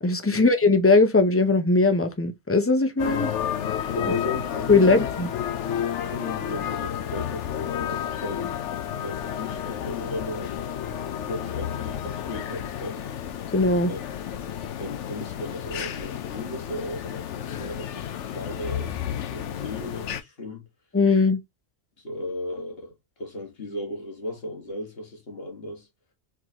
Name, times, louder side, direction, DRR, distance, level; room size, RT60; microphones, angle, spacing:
voice 1, 0.0-3.3 4.0-4.1 4.7-5.3 13.5-13.9 20.9-21.4, left 3 dB, 15° left, 0.5 m, -20 dB
sound 1, 3.0-20.2, left 9 dB, 75° left, 1.0 m, -31 dB
voice 2, 3.9-5.1 6.0-8.6 9.0-10.7 11.2-13.1 13.9-14.0 14.8-20.7 22.0-25.9, left 1 dB, 55° left, 2.0 m, -36 dB
4.6 x 3.9 x 2.9 m
omnidirectional pair, 1.2 m